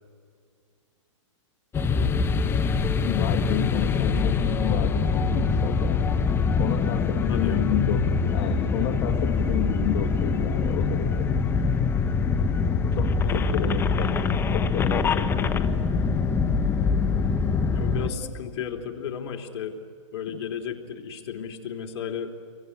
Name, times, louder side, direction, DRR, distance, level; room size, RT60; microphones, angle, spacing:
sound 1, 1.7-18.1, left 5 dB, 15° left, 1.0 m, -24 dB
voice 1, 3.0-6.0 6.6-8.0 8.3-11.3 12.9-14.1 14.5-15.9 18.1-18.3, left 11 dB, 35° left, 3 dB, 2.0 m, -31 dB
voice 2, 7.3-7.7 13.2-13.7 17.7-19.7 20.1-22.3, left 8 dB, 55° left, 4 dB, 3.1 m, -34 dB
29.0 x 23.5 x 8.6 m, 2.3 s
hypercardioid pair, 140°, 16 cm